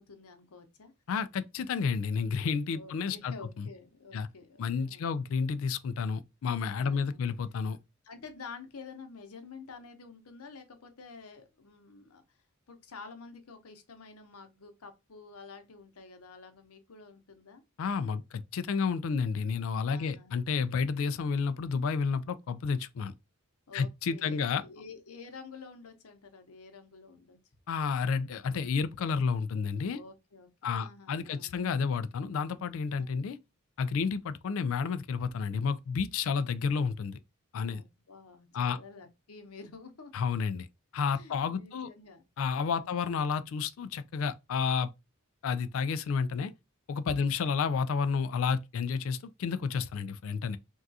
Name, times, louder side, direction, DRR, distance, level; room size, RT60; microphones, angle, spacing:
voice 1, 0.0-0.9 2.7-5.2 6.8-7.2 8.0-12.2 12.7-17.6 19.9-20.3 23.7-27.4 29.9-31.6 32.9-33.2 37.7-40.1 41.1-42.2 42.7-43.0 47.1-47.4, left 4 dB, 85° left, 0.8 m, -49 dB
voice 2, 1.1-3.7 4.1-4.3 4.6-7.8 17.8-23.1 23.7-24.6 27.7-30.0 30.6-33.4 33.8-37.2 37.5-37.8 38.5-38.8 40.1-40.7 40.9-41.9 42.4-44.9 45.4-46.5 46.9-50.6, left 5 dB, 65° left, 0.3 m, -31 dB
3.5 x 2.3 x 2.6 m
head